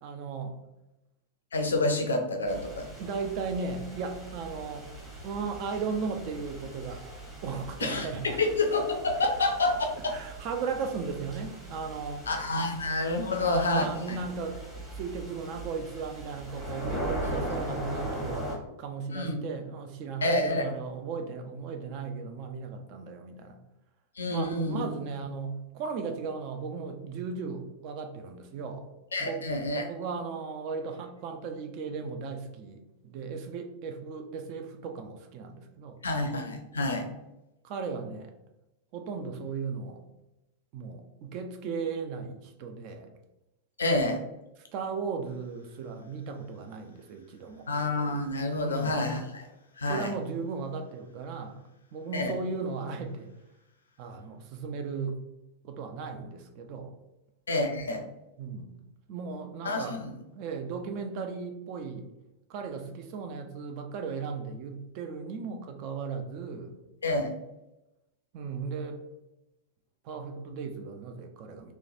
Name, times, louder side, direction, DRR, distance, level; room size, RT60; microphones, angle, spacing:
voice 1, 0.0-0.6 3.0-4.9 5.2-7.0 7.4-8.4 10.1-12.3 13.2-18.5 18.8-23.6 24.3-28.9 29.2-29.4 29.8-36.0 37.6-38.3 38.9-40.0 40.7-43.1 44.7-47.7 48.6-49.0 49.9-51.6 51.9-53.3 54.0-55.2 55.6-56.9 58.4-58.8 59.1-60.0 60.3-62.1 62.5-66.7 68.3-69.0 70.0-71.8, right 5 dB, 45° right, 6 dB, 0.3 m, -36 dB
voice 2, 1.5-2.9 7.8-10.1 12.3-14.2 19.1-19.4 20.2-20.7 24.2-24.8 29.1-29.8 36.0-37.1 43.8-44.2 47.7-49.4 49.8-50.1 52.1-52.4 57.5-58.0 59.6-60.2 67.0-67.3, left 2 dB, 70° left, 4 dB, 0.4 m, -28 dB
sound 1, 2.5-18.6, right 1 dB, 10° right, 0.9 m, -40 dB
3.0 x 2.1 x 2.5 m, 0.93 s
figure-of-eight pair, 90°, 0 cm